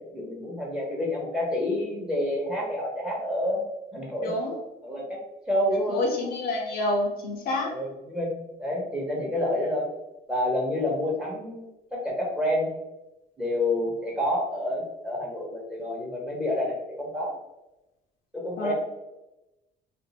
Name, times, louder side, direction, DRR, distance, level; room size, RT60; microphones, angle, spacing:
voice 1, 0.0-3.6 3.9-4.3 4.8-5.2 5.5-6.0 7.7-9.9 10.3-12.7 13.4-17.3 18.3-18.7, left 1 dB, 5° right, -2 dB, 1.0 m, -28 dB
voice 2, 4.2-4.5 5.9-7.7 18.6-18.7, left 2 dB, 60° left, 1 dB, 0.7 m, -28 dB
2.6 x 2.5 x 4.0 m, 0.96 s
cardioid pair, 110°, 17 cm